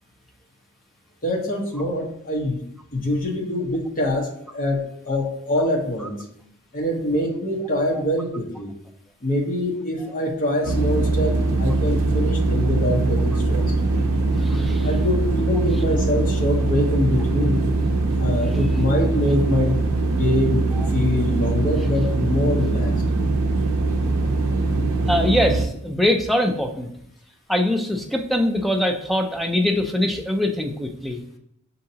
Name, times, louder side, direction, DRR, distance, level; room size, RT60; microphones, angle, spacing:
voice 1, 1.2-2.6 2.9-6.2 6.7-8.7 9.2-13.7 14.8-17.6 18.2-19.8 20.0-22.9, left 1 dB, 40° left, 0 dB, 0.9 m, -24 dB
sound 1, 10.6-25.6, right 2 dB, 65° right, 0.5 m, -22 dB
voice 2, 14.4-14.9 20.8-20.9 25.1-26.9 27.5-31.2, left 1 dB, ahead, 3 dB, 0.4 m, -22 dB
6.3 x 2.8 x 2.8 m, 0.73 s
head